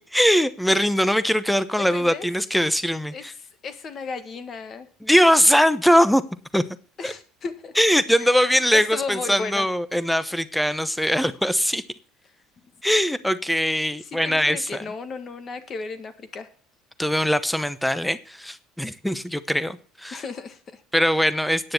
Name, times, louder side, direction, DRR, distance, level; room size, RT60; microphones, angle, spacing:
voice 1, 0.0-3.3 5.0-6.2 6.5-6.6 7.0-7.1 7.8-11.8 12.8-14.9 17.0-20.2 20.9-21.7, equal, ahead, 14 dB, 0.8 m, -21 dB
voice 2, 1.8-2.3 3.1-4.9 7.0-7.7 8.2-9.7 14.2-16.5 20.1-20.8, left 4 dB, 40° left, 10 dB, 1.7 m, -35 dB
9.8 x 6.7 x 7.8 m, 0.43 s
supercardioid pair, 90°, 0 cm